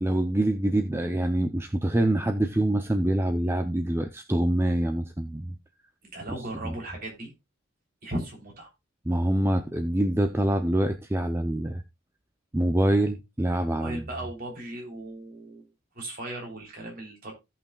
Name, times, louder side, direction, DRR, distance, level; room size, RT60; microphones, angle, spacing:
voice 1, 0.0-5.5 6.6-6.7 9.1-11.8 12.5-14.0, right 1 dB, 10° right, 0.5 m, -25 dB
voice 2, 6.1-7.3 8.0-8.7 13.8-15.7 15.9-17.3, right 1 dB, 45° right, 3.3 m, -37 dB
16.5 x 5.6 x 2.3 m
head